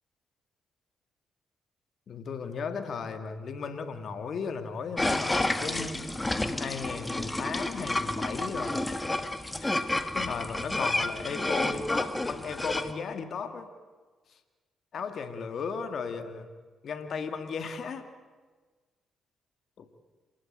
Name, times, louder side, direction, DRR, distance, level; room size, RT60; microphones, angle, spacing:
voice 1, 2.1-6.0 6.6-8.9 9.6-9.8 10.1-13.7 14.9-16.5 16.8-18.1 19.8-20.0, left 5 dB, 60° left, 8 dB, 2.1 m, -35 dB
sound 1, 5.0-12.9, left 2 dB, 20° left, 1.6 m, -30 dB
27.5 x 13.0 x 9.0 m, 1.4 s
hypercardioid pair, 45°, 0 cm